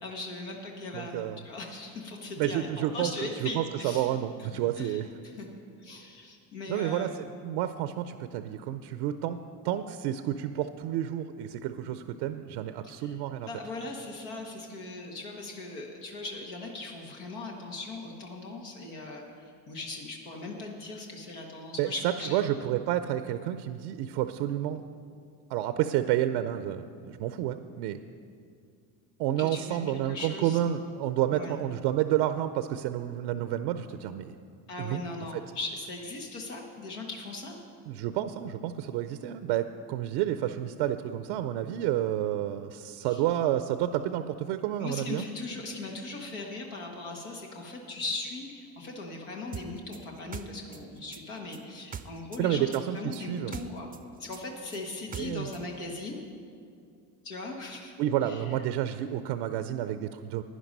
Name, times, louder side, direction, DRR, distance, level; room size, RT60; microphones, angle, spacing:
voice 1, 0.0-4.1 4.8-5.5 5.8-7.1 12.8-13.2 13.4-19.2 19.7-22.4 29.4-30.6 31.3-31.6 34.7-37.6 43.1-43.2 44.8-52.7 52.9-53.9 54.2-56.2 57.2-57.9 58.2-58.5, left 2 dB, 90° left, 0 dB, 1.6 m, -39 dB
voice 2, 0.9-1.4 2.4-5.1 6.7-9.4 9.6-13.5 21.8-21.9 22.3-24.8 25.5-28.0 29.2-34.3 34.8-35.0 35.3-35.4 37.9-45.2 52.4-53.5 55.1-55.5 58.0-60.4, right 12 dB, 85° right, 10 dB, 0.6 m, -30 dB
sound 1, 49.5-52.4 52.7-55.6, right 7 dB, 20° right, 0.4 m, -42 dB
11.5 x 9.8 x 5.3 m, 2.3 s
supercardioid pair, 75°, 44 cm